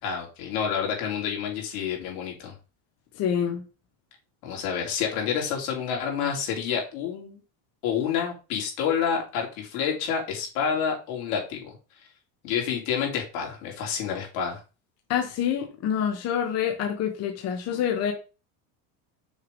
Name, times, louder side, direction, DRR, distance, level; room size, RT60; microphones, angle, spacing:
voice 1, 0.0-2.5 4.4-7.4 7.8-11.7 12.4-14.6, left 7 dB, 80° left, 3.1 m, -28 dB
voice 2, 3.1-3.6 15.1-18.1, left 8 dB, 35° left, 1.0 m, -27 dB
6.4 x 3.5 x 5.2 m
cardioid pair, 160°, 42 cm